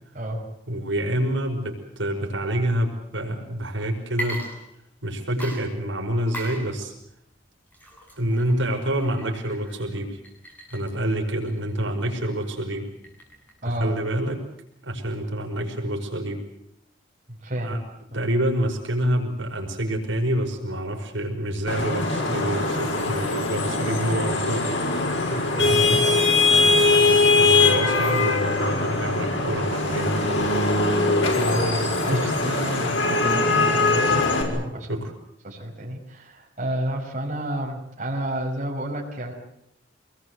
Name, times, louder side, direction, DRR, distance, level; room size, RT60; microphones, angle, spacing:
voice 1, 0.1-0.5 13.6-13.9 17.3-17.7 18.1-18.2 25.3-26.2 26.5-27.3 31.3-35.1 35.4-39.3, right 1 dB, 40° right, -1 dB, 6.0 m, -30 dB
voice 2, 0.7-4.4 5.0-6.9 8.2-10.2 10.7-12.9 13.6-14.4 14.8-16.4 17.6-17.8 18.1-24.7 25.6-26.0 27.0-30.5 32.1-32.2 34.9-35.1, right 1 dB, 80° right, 1 dB, 5.4 m, -27 dB
Water / Liquid, 4.1-5.1 5.4-13.6, right 1 dB, 10° left, 7.8 m, -40 dB
Vehicle horn car horn honking / Traffic noise roadway noise, 21.7-34.4, left 3 dB, 85° left, 6.2 m, -21 dB
26.5 x 20.5 x 8.0 m, 0.78 s
head